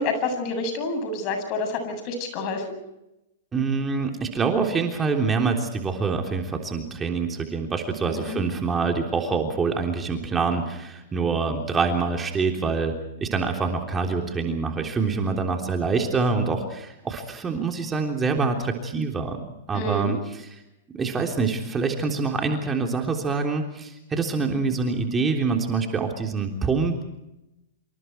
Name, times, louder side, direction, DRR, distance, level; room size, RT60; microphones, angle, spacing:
voice 1, 0.0-2.6 8.1-8.4 19.7-20.2, left 3 dB, 45° left, 7 dB, 7.9 m, -28 dB
voice 2, 3.5-20.6 20.9-26.9, right 4 dB, 15° right, 3 dB, 3.4 m, -25 dB
27.5 x 27.5 x 4.6 m, 0.92 s
hypercardioid pair, 120°, 0 cm